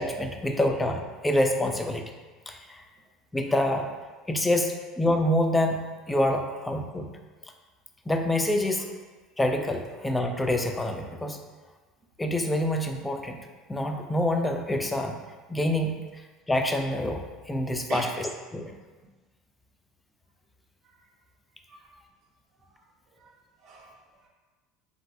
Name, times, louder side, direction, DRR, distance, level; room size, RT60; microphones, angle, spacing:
voice 1, 0.0-2.1 2.5-2.8 3.3-3.9 4.3-7.1 8.1-8.9 9.4-11.4 12.2-13.4 13.7-15.2 15.5-16.0 16.5-18.7, left 1 dB, 10° left, 4 dB, 0.4 m, -26 dB
voice 2, 21.7-22.0 22.7-22.9 23.1-24.3, right 4 dB, 60° right, -2 dB, 0.4 m, -43 dB
3.8 x 2.5 x 2.3 m, 1.3 s
hypercardioid pair, 80°, 0 cm